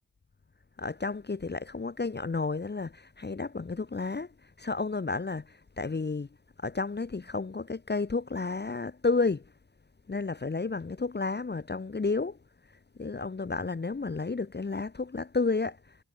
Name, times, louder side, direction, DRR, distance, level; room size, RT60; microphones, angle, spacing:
voice 1, 0.8-6.3 6.6-9.5 10.1-12.4 13.0-16.0, left 3 dB, 25° left, 1.2 m, -31 dB
wide cardioid pair, 115°, 38 cm